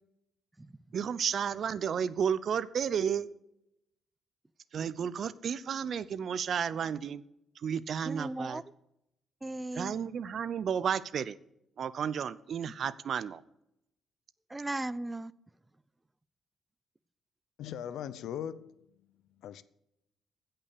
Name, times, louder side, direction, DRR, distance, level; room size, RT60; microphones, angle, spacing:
voice 1, 0.9-3.3 4.7-7.2 7.6-8.6 9.7-11.4 11.8-13.4, right 7 dB, 55° right, 0.6 m, -32 dB
voice 2, 8.1-8.6 9.4-10.0 12.6-12.7 14.5-15.3, right 2 dB, 15° right, 0.5 m, -37 dB
voice 3, 17.6-18.7 19.4-19.6, left 9 dB, 80° left, 0.6 m, -39 dB
15.5 x 5.7 x 6.7 m
cardioid pair, 90°, 0 cm